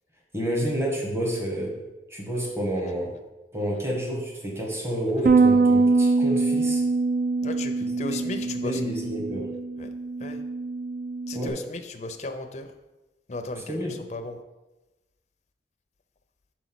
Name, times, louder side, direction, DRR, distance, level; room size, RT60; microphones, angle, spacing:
voice 1, 0.3-1.8 2.1-3.1 3.5-6.8 8.1-8.2 8.6-9.5 11.3-11.6 13.7-14.0, equal, 15° right, -1 dB, 1.1 m, -29 dB
Bass guitar, 5.3-11.5, right 3 dB, 50° right, 0.4 m, -23 dB
voice 2, 7.4-8.8 9.8-9.9 10.2-10.4 11.3-12.7 13.3-14.4, left 2 dB, 40° left, 6 dB, 0.5 m, -35 dB
5.2 x 4.4 x 5.9 m, 1.1 s
head